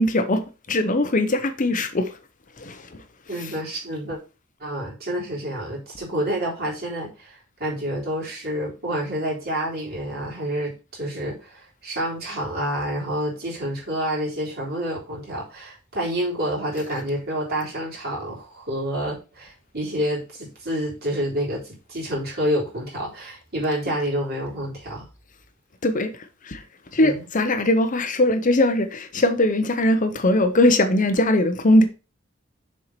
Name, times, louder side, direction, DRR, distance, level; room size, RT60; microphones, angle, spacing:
voice 1, 0.0-2.2 2.6-3.0 3.4-3.5 25.8-26.6 26.9-31.8, left 1 dB, 40° left, 0.8 m, -21 dB
voice 2, 3.3-4.2 4.6-25.1 26.9-27.3, equal, 50° right, 3.7 m, -28 dB
6.7 x 4.6 x 4.4 m
head